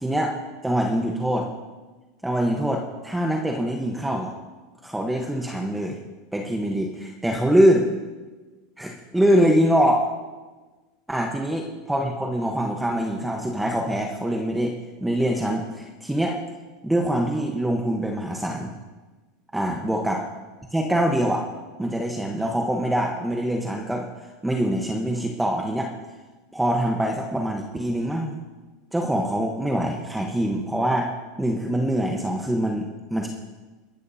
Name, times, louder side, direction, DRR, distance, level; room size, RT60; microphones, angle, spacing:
voice 1, 0.0-1.5 2.2-4.3 4.8-6.0 6.3-7.9 8.8-10.1 11.1-14.7 15.0-16.4 16.8-18.7 19.5-20.2 20.7-21.4 21.8-25.9 26.5-28.4 28.9-31.1 31.4-33.3, equal, 5° right, 1 dB, 1.2 m, -24 dB
21.5 x 12.0 x 2.8 m, 1.3 s
supercardioid pair, 120°, 0 cm